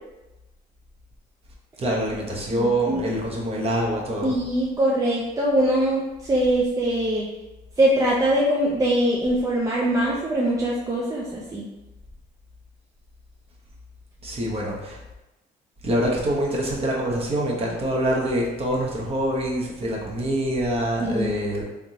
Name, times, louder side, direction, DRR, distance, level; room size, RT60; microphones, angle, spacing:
voice 1, 1.8-4.3 14.2-15.0 15.8-21.6, right 1 dB, 35° right, -2 dB, 1.0 m, -25 dB
voice 2, 2.5-3.0 4.2-7.3 7.8-11.7 21.0-21.4, right 1 dB, 20° right, -4 dB, 0.6 m, -22 dB
3.6 x 3.5 x 2.9 m, 1.0 s
cardioid pair, 110°, 17 cm